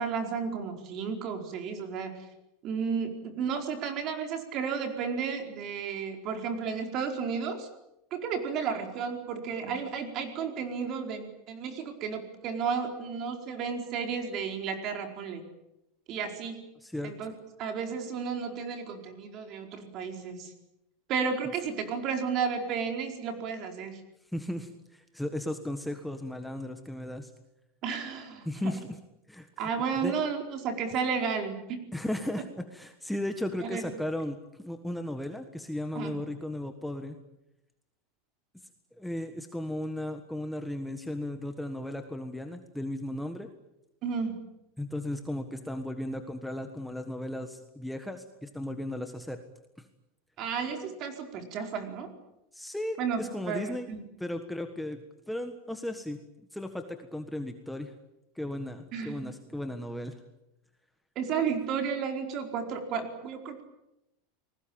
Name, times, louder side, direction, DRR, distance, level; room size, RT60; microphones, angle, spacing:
voice 1, 0.0-2.2 2.6-7.7 8.1-15.4 16.1-16.6 17.0-17.3 17.6-20.5 21.1-24.0 27.8-28.7 29.6-31.8 33.6-33.8 35.9-36.2 44.0-44.4 50.4-52.1 53.0-53.2 53.5-54.0 58.9-59.3 61.1-63.6, right 6 dB, 35° right, 5 dB, 4.6 m, -33 dB
voice 2, 16.8-17.3 24.3-27.3 28.4-29.0 29.3-29.7 30.0-30.1 31.9-37.1 39.0-43.5 44.8-49.4 49.8-49.9 52.5-53.9 54.2-55.0 55.3-56.2 56.5-57.9 58.3-60.2, left 1 dB, ahead, 6 dB, 1.5 m, -35 dB
29.5 x 20.5 x 8.8 m, 0.90 s
supercardioid pair, 160°, 0 cm